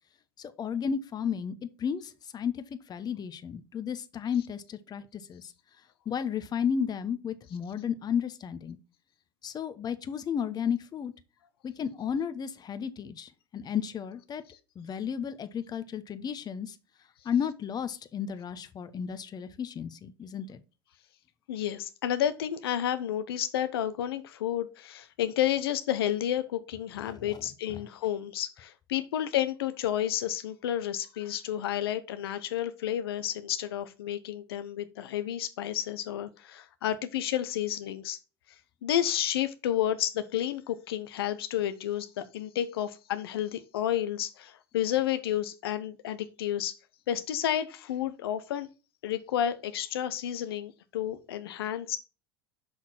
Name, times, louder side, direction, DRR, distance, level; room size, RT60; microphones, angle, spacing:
voice 1, 0.4-5.5 6.1-8.8 9.4-11.1 11.6-14.4 14.8-16.8 17.2-20.6 27.1-27.4, left 7 dB, 30° left, 1.0 m, -33 dB
voice 2, 21.5-38.2 38.8-46.7 47.1-48.7 49.0-52.0, left 11 dB, 75° left, 0.8 m, -31 dB
6.3 x 5.8 x 4.4 m
hypercardioid pair, 80°, 13 cm